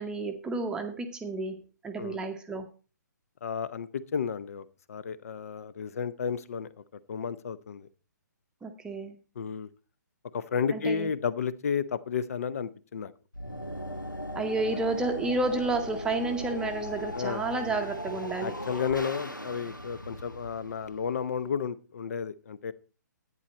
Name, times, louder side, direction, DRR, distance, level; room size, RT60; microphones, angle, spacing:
voice 1, 0.0-2.7 8.6-9.1 10.7-11.1 14.3-18.5, right 3 dB, 10° right, 5 dB, 0.8 m, -31 dB
voice 2, 3.4-7.9 9.4-9.7 10.3-13.1 17.1-17.4 18.4-22.7, left 6 dB, 50° left, 17 dB, 0.8 m, -32 dB
sound 1, 13.3-21.5, left 1 dB, 90° left, 1.1 m, -38 dB
11.0 x 9.3 x 4.2 m, 0.35 s
figure-of-eight pair, 130°, 10 cm